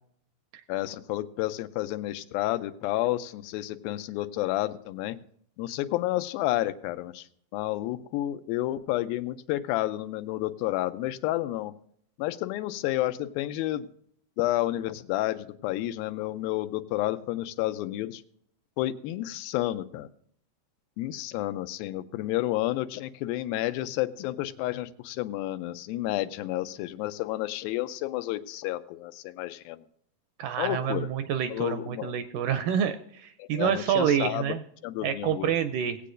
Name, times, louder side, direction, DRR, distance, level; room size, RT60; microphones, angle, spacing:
voice 1, 0.7-5.2 5.6-7.3 7.5-11.7 12.2-13.9 14.4-18.2 18.8-20.1 21.0-29.8 30.6-31.1 31.5-32.1 33.4-34.5 34.8-35.5, left 15 dB, 85° left, 12 dB, 2.4 m, -30 dB
voice 2, 30.4-34.6 35.0-36.0, right 9 dB, 80° right, 9 dB, 1.9 m, -27 dB
19.0 x 8.4 x 2.5 m, 0.65 s
omnidirectional pair, 4.2 m